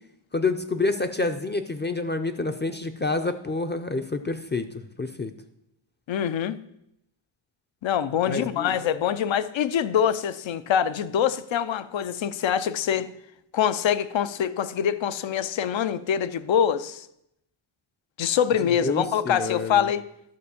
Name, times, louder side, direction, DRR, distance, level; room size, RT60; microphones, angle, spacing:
voice 1, 0.3-4.7 5.0-5.3 8.3-8.8 18.8-19.9, left 3 dB, 25° left, 0.5 m, -28 dB
voice 2, 6.1-6.6 7.8-13.1 13.5-17.1 18.2-20.1, left 8 dB, 70° left, 0.6 m, -24 dB
11.5 x 4.2 x 7.0 m
wide cardioid pair, 105°, 48 cm